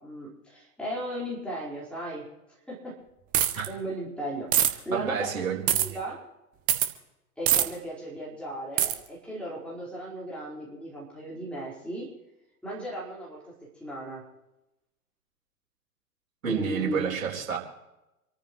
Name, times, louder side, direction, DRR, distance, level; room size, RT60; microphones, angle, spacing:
voice 1, 0.0-2.2 2.7-2.9 3.7-6.2 7.4-12.1 12.6-13.5 13.8-14.2 16.4-17.1, right 1 dB, ahead, -6 dB, 4.8 m, -36 dB
sound 1, 3.3-3.7 4.5-4.7 5.7-5.9 6.7-6.9 7.5-7.6 8.8-8.9, right 11 dB, 20° right, 0.8 m, -22 dB
voice 2, 4.9-6.0 16.4-17.6, right 8 dB, 60° right, -2 dB, 4.3 m, -30 dB
27.0 x 14.0 x 3.2 m, 0.93 s
figure-of-eight pair, 105°, 46 cm